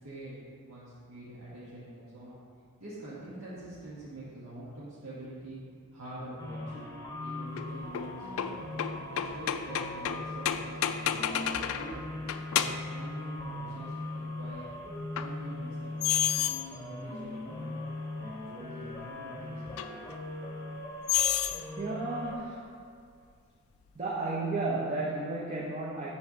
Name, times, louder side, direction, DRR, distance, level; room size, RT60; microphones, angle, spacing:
voice 1, 0.0-2.4 2.8-5.6 5.9-6.9 7.2-8.6 9.1-12.1 12.5-14.7 15.2-16.1 16.6-17.8 18.2-19.8, right 1 dB, 75° right, -10 dB, 1.5 m, -45 dB
sound 1, 6.4-22.3, left 2 dB, 15° left, 0.9 m, -40 dB
sound 2, 7.6-12.0 12.3-12.9 15.2-15.3 16.0-16.6 17.4-17.5 19.8-19.9 21.1-21.6, left 10 dB, 70° left, 0.3 m, -30 dB
voice 2, 21.8-22.7 23.9-26.1, right 2 dB, 30° right, -4 dB, 0.7 m, -33 dB
7.8 x 3.4 x 6.1 m, 2.2 s
head